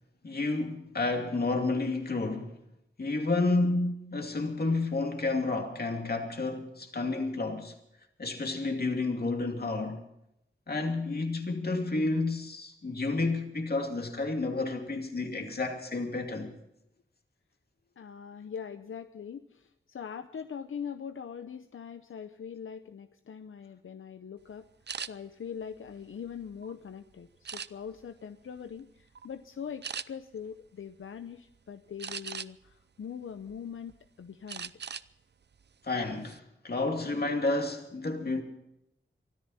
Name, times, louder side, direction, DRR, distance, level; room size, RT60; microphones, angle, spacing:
voice 1, 0.2-2.5 3.0-7.7 8.2-10.0 10.7-16.5 35.8-38.4, left 3 dB, 50° left, 2.5 m, -30 dB
voice 2, 18.0-24.7 25.1-34.7, left 7 dB, 90° left, 0.7 m, -42 dB
sound 1, 24.9-25.1 25.7-26.7 27.4-28.0 28.6-28.8 29.1-29.3 29.8-30.1 32.0-32.7 33.2-33.9 34.5-35.1 35.4-35.6 36.0-36.4, right 6 dB, 60° right, 0.5 m, -39 dB
23.5 x 13.5 x 4.2 m
wide cardioid pair, 90°, 20 cm